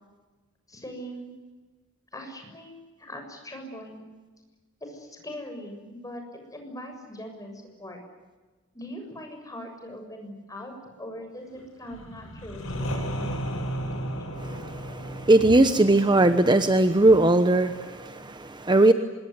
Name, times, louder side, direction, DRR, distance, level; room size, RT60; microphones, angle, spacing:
voice 1, 0.7-1.3 2.1-4.0 4.8-6.2 6.5-8.0 8.7-13.0, equal, 15° left, 4 dB, 7.1 m, -41 dB
sound 1, 11.8-17.6, equal, 90° left, 7.7 m, -34 dB
voice 2, 14.4-18.9, right 2 dB, 20° right, 9 dB, 1.1 m, -20 dB
25.0 x 22.0 x 9.5 m, 1.3 s
head